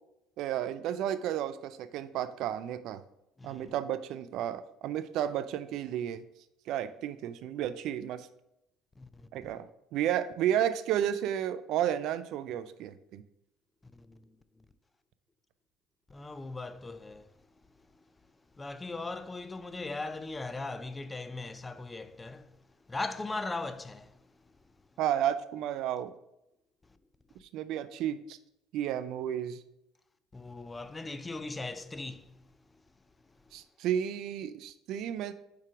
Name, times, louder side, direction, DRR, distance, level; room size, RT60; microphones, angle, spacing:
voice 1, 0.4-3.0 3.4-6.2 6.7-8.3 9.3-9.7 9.9-13.2 25.0-26.1 27.5-28.4 28.7-29.6 33.5-35.3, right 10 dB, 65° right, 0.3 m, -32 dB
voice 2, 3.4-3.7 9.0-9.3 13.8-14.3 16.1-17.3 18.6-22.6 22.9-24.2 30.3-32.4, left 3 dB, 20° left, 0.4 m, -39 dB
4.7 x 4.6 x 4.9 m
supercardioid pair, 85°, 0 cm